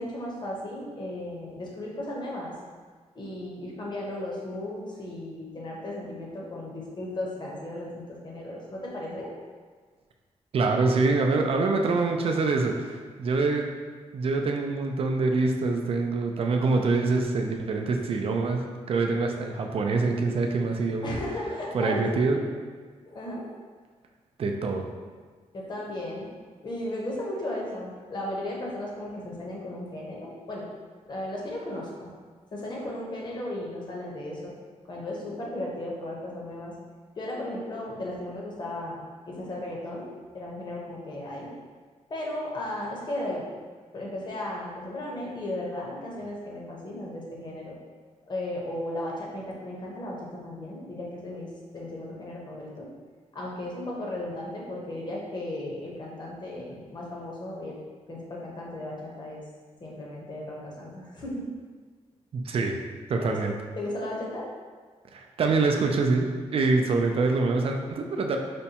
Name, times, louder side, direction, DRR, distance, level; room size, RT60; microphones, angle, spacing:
voice 1, 0.0-2.5 3.1-9.3 21.0-22.5 23.1-23.5 25.5-26.3 26.6-30.7 31.1-32.1 32.5-34.5 34.9-36.7 37.2-40.1 40.3-41.5 42.1-43.5 43.9-47.8 48.3-52.9 53.3-57.8 58.1-59.4 59.8-61.5 63.2-63.4 63.8-64.5, left 1 dB, 40° left, -3 dB, 0.8 m, -35 dB
voice 2, 10.5-13.7 14.1-18.6 18.9-21.2 21.7-22.4 24.4-24.9 62.3-62.7 63.1-63.5 65.1-66.3 66.5-68.4, right 3 dB, 50° right, 3 dB, 0.4 m, -25 dB
5.1 x 2.2 x 2.8 m, 1.5 s
wide cardioid pair, 125°, 12 cm